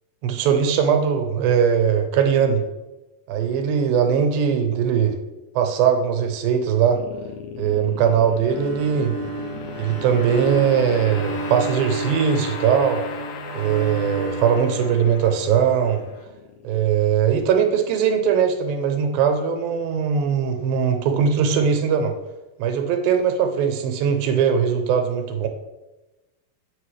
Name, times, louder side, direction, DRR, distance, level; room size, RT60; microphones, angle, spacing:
voice 1, 0.2-2.6 3.3-5.2 5.6-7.0 7.6-9.1 9.8-13.0 13.5-16.0 16.6-22.1 22.6-25.5, right 7 dB, 80° right, 5 dB, 2.5 m, -20 dB
sound 1, 6.9-18.1, left 7 dB, 80° left, 2.2 m, -37 dB
Bowed string instrument, 8.4-15.6, right 4 dB, 65° right, 1.9 m, -32 dB
8.2 x 5.7 x 3.3 m, 1.1 s
omnidirectional pair, 4.3 m